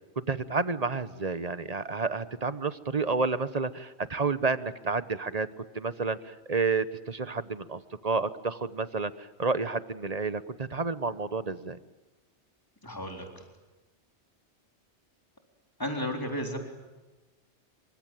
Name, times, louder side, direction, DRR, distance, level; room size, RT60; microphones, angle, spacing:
voice 1, 0.2-5.5 5.7-11.8, right 4 dB, 35° right, 14 dB, 1.0 m, -30 dB
voice 2, 12.8-13.4 15.8-16.6, equal, 20° left, 3 dB, 4.0 m, -33 dB
25.5 x 24.0 x 9.2 m, 1.2 s
omnidirectional pair, 1.2 m